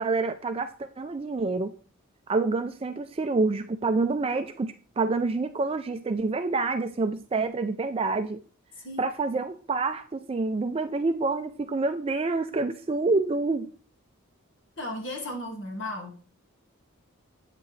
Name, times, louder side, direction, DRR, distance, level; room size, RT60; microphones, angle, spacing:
voice 1, 0.0-1.7 2.3-8.4 9.0-13.7, right 3 dB, 25° right, 8 dB, 0.3 m, -27 dB
voice 2, 14.8-16.2, left 1 dB, 60° left, 2 dB, 2.0 m, -35 dB
8.4 x 7.5 x 3.2 m, 0.40 s
head